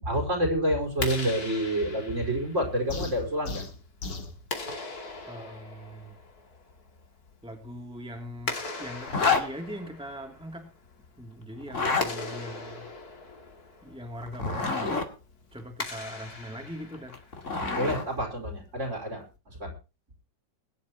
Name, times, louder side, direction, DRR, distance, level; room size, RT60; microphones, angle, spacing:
voice 1, 0.0-3.6 17.5-19.2 19.6-19.7, equal, 45° right, 1 dB, 5.2 m, -28 dB
Clapping, 0.8-17.6, left 3 dB, 60° left, 3.1 m, -41 dB
sound 1, 2.9-4.4, left 3 dB, 85° left, 2.9 m, -36 dB
voice 2, 5.3-6.2 7.4-10.7 11.2-12.9 13.8-15.1 15.5-17.2, equal, 5° right, 2 dB, 3.0 m, -41 dB
Zipper (clothing), 9.0-9.5 11.6-12.1 14.2-15.1 16.9-18.0, left 4 dB, 45° left, 2.7 m, -27 dB
22.5 x 11.5 x 3.0 m, 0.32 s
omnidirectional pair, 1.8 m